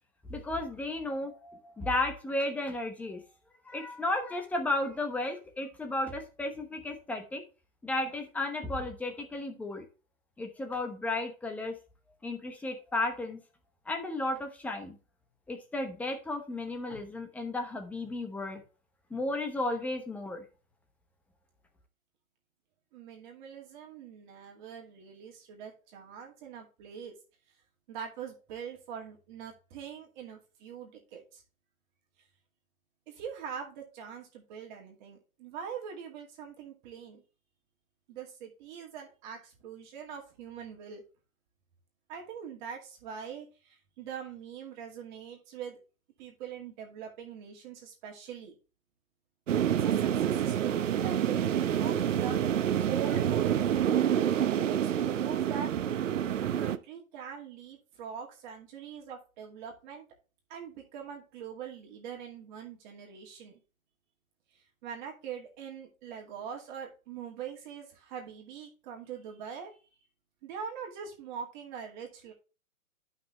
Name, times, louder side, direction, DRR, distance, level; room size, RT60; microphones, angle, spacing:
voice 1, 0.3-3.2 3.6-7.4 7.8-9.8 10.4-11.7 12.2-13.4 13.9-15.0 15.5-18.6 19.1-20.4, left 2 dB, 5° left, 5 dB, 0.9 m, -34 dB
voice 2, 22.9-27.1 27.9-31.4 33.1-37.2 38.1-41.0 42.1-45.8 46.2-48.5 49.8-53.6 54.7-56.1 56.6-60.1 60.5-63.5 64.5-69.9 70.4-72.3, right 7 dB, 35° right, 0 dB, 2.3 m, -43 dB
sound 1, 49.5-56.8, right 9 dB, 65° right, 0.9 m, -27 dB
11.5 x 5.8 x 3.1 m, 0.33 s
hypercardioid pair, 150°, 41 cm